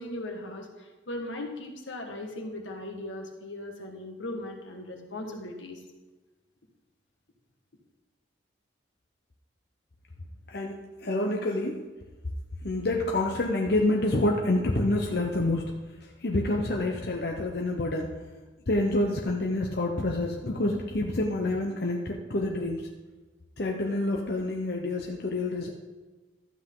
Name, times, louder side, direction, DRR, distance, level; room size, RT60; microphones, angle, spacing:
voice 1, 0.0-5.8, left 1 dB, 80° left, 2 dB, 1.6 m, -38 dB
voice 2, 10.5-11.8 12.6-15.7 16.0-18.2 18.7-22.9 23.6-25.7, left 2 dB, 55° left, 1 dB, 0.8 m, -28 dB
12.5 x 8.1 x 3.8 m, 1.2 s
head